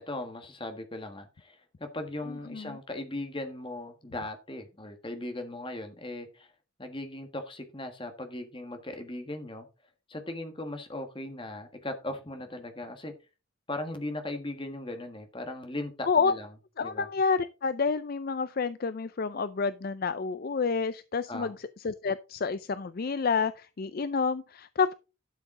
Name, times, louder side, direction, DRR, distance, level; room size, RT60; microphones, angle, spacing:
voice 1, 0.0-6.5 6.8-9.7 10.1-13.1 13.7-16.5 16.8-17.1 21.3-21.6, left 1 dB, 25° left, 1.5 m, -38 dB
voice 2, 16.8-24.9, left 5 dB, 45° left, 0.4 m, -29 dB
12.0 x 7.0 x 3.7 m
head